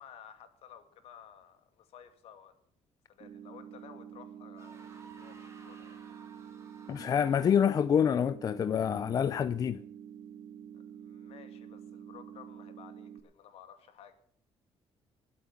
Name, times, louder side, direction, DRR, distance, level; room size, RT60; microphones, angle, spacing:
voice 1, 0.0-2.5 3.1-6.0 10.7-14.2, left 9 dB, 70° left, 2.3 m, -54 dB
sound 1, 3.2-13.2, right 9 dB, 65° right, 2.6 m, -48 dB
sound 2, 4.6-7.9, right 4 dB, 25° right, 2.8 m, -55 dB
voice 2, 6.9-9.8, left 8 dB, 35° left, 0.5 m, -27 dB
20.0 x 8.4 x 5.8 m
cardioid pair, 165°, 11 cm